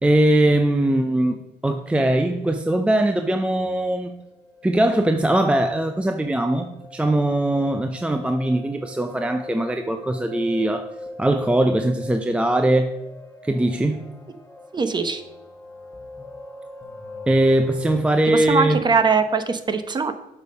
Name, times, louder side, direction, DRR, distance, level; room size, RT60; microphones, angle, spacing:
voice 1, 0.0-4.1 4.6-10.9 11.2-12.9 13.4-14.1 17.3-18.8, right 1 dB, 5° right, 7 dB, 0.5 m, -21 dB
sound 1, 4.0-18.0, left 2 dB, 15° left, 1.1 m, -41 dB
voice 2, 14.7-15.2 18.3-20.1, right 5 dB, 25° right, 9 dB, 0.9 m, -21 dB
8.0 x 5.5 x 5.3 m, 0.97 s
cardioid pair, 110°, 17 cm